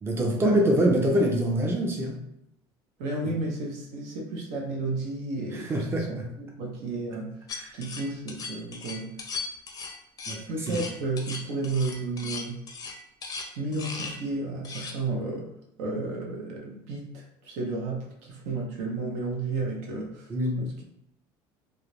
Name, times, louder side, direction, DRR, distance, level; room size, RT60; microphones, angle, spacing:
voice 1, 0.0-2.2 3.2-3.3 5.5-6.3 7.5-7.7 10.3-10.8 20.3-20.6, right 1 dB, 20° right, 0 dB, 0.6 m, -25 dB
voice 2, 3.0-7.4 7.7-9.1 10.5-12.6 13.6-15.5 15.8-20.3 20.6-20.8, right 3 dB, 70° right, -1 dB, 0.6 m, -32 dB
sound 1, 7.5-14.2 14.6-14.9, left 4 dB, 30° left, 0.5 m, -38 dB
2.4 x 2.0 x 3.0 m, 0.78 s
supercardioid pair, 95°, 12 cm